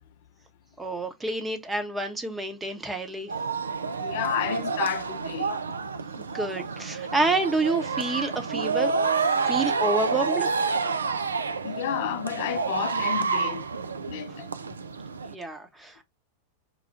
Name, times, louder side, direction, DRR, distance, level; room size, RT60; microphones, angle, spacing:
voice 1, 0.8-3.3 6.2-10.5 15.3-16.0, right 2 dB, 10° right, 0.8 m, -29 dB
sound 1, 3.3-15.3, right 4 dB, 75° right, 0.4 m, -29 dB
voice 2, 4.0-5.6 9.4-9.5 11.6-13.6 14.0-14.5, left 9 dB, 55° left, 0.5 m, -31 dB
4.4 x 2.3 x 2.8 m
figure-of-eight pair, 90°, 0 cm